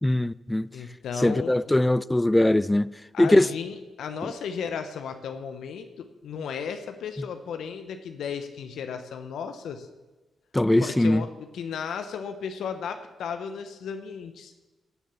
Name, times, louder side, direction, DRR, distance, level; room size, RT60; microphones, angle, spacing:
voice 1, 0.0-0.7 1.2-2.9 3.2-3.5 10.5-11.2, left 1 dB, 15° left, 0.4 m, -21 dB
voice 2, 0.7-1.7 3.1-9.9 10.8-14.5, left 6 dB, 75° left, 0.9 m, -35 dB
14.5 x 7.3 x 7.0 m
supercardioid pair, 45°, 0 cm